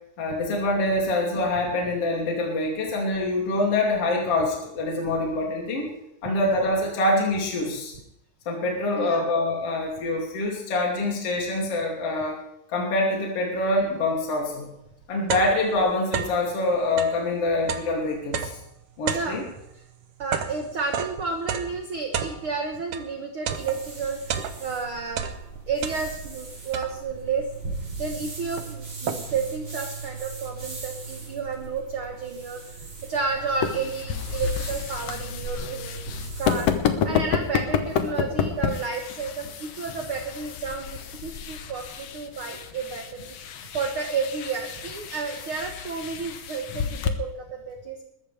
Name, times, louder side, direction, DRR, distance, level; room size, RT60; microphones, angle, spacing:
voice 1, 0.2-5.9 6.2-7.9 8.5-12.4 12.7-14.7 15.1-18.6 19.0-19.4, left 2 dB, 45° left, -2 dB, 3.4 m, -25 dB
voice 2, 9.0-9.3 19.1-19.4 20.2-25.3 25.7-27.7 28.0-36.0 36.4-43.3 43.7-48.0, right 4 dB, 55° right, 3 dB, 1.6 m, -31 dB
sound 1, 14.4-14.5 14.9-16.5 16.9-23.1 23.5-24.8 25.1-26.4 26.7-27.3 27.9-28.0 28.3-29.5, right 7 dB, 90° right, 1.2 m, -32 dB
sound 2, 23.5-36.8, right 4 dB, 35° right, 5.5 m, -39 dB
sound 3, 33.2-47.1, left 7 dB, 65° left, 1.6 m, -30 dB
21.0 x 14.0 x 3.4 m, 0.82 s
omnidirectional pair, 4.0 m